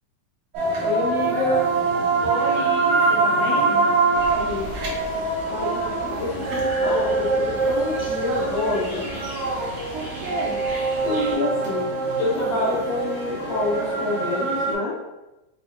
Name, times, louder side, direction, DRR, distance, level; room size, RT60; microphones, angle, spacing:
sound 1, 0.5-14.7, right 3 dB, 65° right, 1.7 m, -24 dB
voice 1, 0.8-1.6 4.3-4.7 5.5-9.0 10.3-10.4 11.0-11.9 12.2-14.9, left 2 dB, 70° left, -7 dB, 1.6 m, -27 dB
sound 2, 1.1-14.7, left 4 dB, 90° left, 1.5 m, -41 dB
voice 2, 2.2-3.9 9.9-10.6, right 2 dB, 85° right, -2 dB, 2.3 m, -31 dB
sound 3, 4.1-11.3, left 1 dB, 40° right, 1.1 m, -37 dB
4.9 x 2.6 x 2.5 m, 0.98 s
omnidirectional pair, 3.7 m